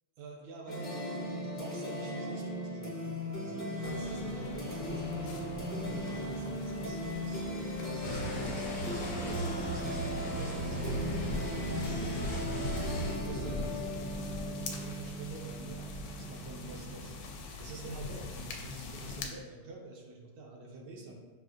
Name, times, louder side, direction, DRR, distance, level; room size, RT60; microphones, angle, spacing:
voice 1, 0.2-7.4 7.9-11.5 11.8-21.1, right 3 dB, 75° right, 0 dB, 1.2 m, -47 dB
sound 1, 0.7-17.3, equal, 15° left, 0.4 m, -38 dB
sound 2, 3.8-19.3, left 3 dB, 80° left, 1.2 m, -43 dB
sound 3, 8.0-13.1, right 1 dB, 55° left, 1.2 m, -36 dB
5.8 x 2.5 x 2.5 m, 1.3 s
omnidirectional pair, 1.9 m